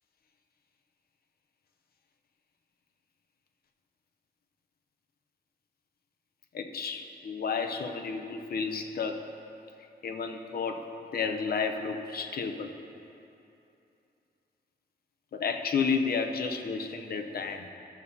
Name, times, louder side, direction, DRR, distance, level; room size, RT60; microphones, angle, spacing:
voice 1, 6.5-9.2 10.0-10.9 11.1-12.7 15.3-17.7, left 5 dB, 60° left, 5 dB, 0.6 m, -31 dB
13.5 x 7.0 x 2.7 m, 2.8 s
wide cardioid pair, 95°, 17 cm